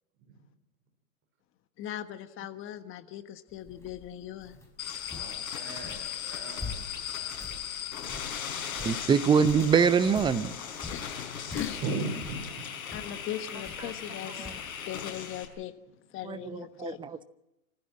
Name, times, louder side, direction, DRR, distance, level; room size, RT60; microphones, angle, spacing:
voice 1, 1.8-4.6 10.9-11.8 12.9-15.7 16.1-17.0, left 12 dB, 30° left, 10 dB, 1.3 m, -39 dB
sound 1, 3.5-13.2 13.6-14.0 14.4-14.7, left 3 dB, 5° left, 5.6 m, -44 dB
sound 2, 4.8-15.4, left 8 dB, 70° left, 5.7 m, -38 dB
voice 2, 5.1-7.0 8.7-9.2 11.8-12.7 16.3-16.4, right 3 dB, 30° right, 6 dB, 5.0 m, -38 dB
voice 3, 8.8-10.5 14.4-14.5 16.2-17.2, right 6 dB, 10° right, 13 dB, 0.7 m, -24 dB
27.0 x 15.0 x 7.6 m, 0.93 s
hypercardioid pair, 125°, 43 cm